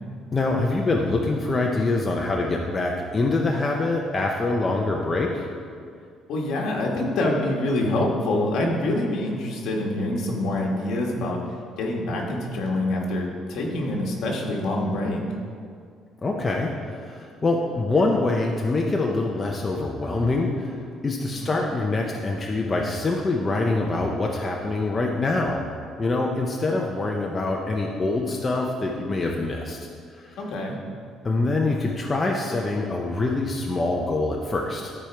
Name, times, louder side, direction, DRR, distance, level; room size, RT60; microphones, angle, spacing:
voice 1, 0.3-5.5 16.2-20.8 21.0-25.7 26.0-30.4 31.2-34.9, left 2 dB, 20° left, 0 dB, 0.6 m, -25 dB
voice 2, 6.3-11.4 11.8-15.2 21.3-21.5 30.4-30.8, left 1 dB, 60° left, -1 dB, 1.7 m, -26 dB
13.5 x 5.1 x 4.5 m, 2.2 s
cardioid pair, 155°, 0 cm